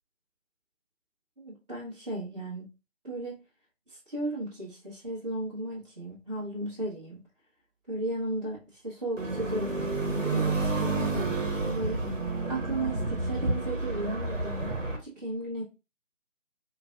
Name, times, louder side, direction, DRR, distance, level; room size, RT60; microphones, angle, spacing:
voice 1, 1.4-2.6 3.0-3.4 3.9-7.2 7.9-12.1 12.5-15.6, right 1 dB, 35° right, 1.6 m, -35 dB
sound 1, 9.2-15.0, right 3 dB, 85° right, 1.1 m, -30 dB
5.6 x 2.3 x 2.6 m
figure-of-eight pair, 150°, 37 cm